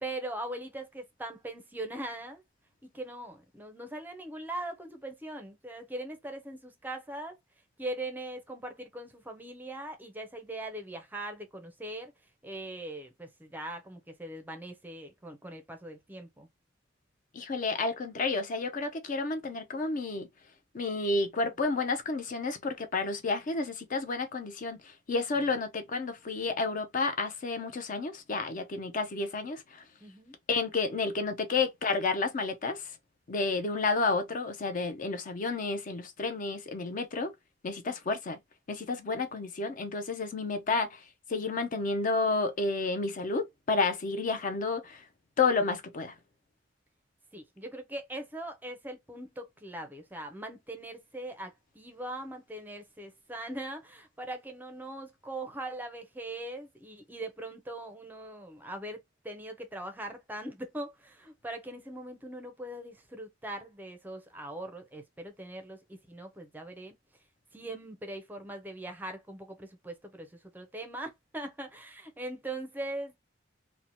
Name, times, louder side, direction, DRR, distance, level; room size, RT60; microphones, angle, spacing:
voice 1, 0.0-2.4 2.8-7.4 7.8-12.1 12.4-16.5 30.0-30.3 47.3-67.0 67.5-73.2, right 1 dB, 10° right, 0.5 m, -41 dB
voice 2, 17.3-20.3 20.7-24.8 25.1-29.8 30.5-32.8 33.3-37.3 37.6-38.4 38.7-41.0 41.3-45.0 45.4-46.1, left 3 dB, 45° left, 0.5 m, -30 dB
2.7 x 2.1 x 2.7 m
head